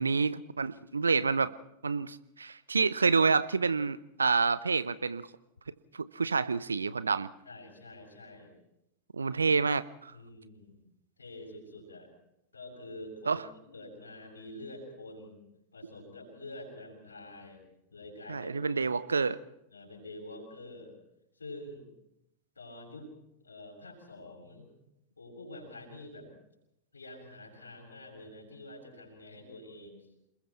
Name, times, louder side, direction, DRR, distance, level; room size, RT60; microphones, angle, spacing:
voice 1, 0.0-1.5 1.8-5.3 5.9-7.3 9.1-10.1 13.3-13.4 18.3-19.4, right 4 dB, 75° right, 16 dB, 0.8 m, -28 dB
voice 2, 7.5-8.5 10.1-10.8 11.2-12.1 12.5-13.4 13.7-15.4 15.7-17.6 17.9-19.0 19.7-20.9 21.4-21.9 22.6-23.1 23.4-24.7 25.2-26.3 26.9-30.1, left 1 dB, 75° left, -2 dB, 7.0 m, -47 dB
28.5 x 20.5 x 4.5 m, 0.84 s
figure-of-eight pair, 90°, 0 cm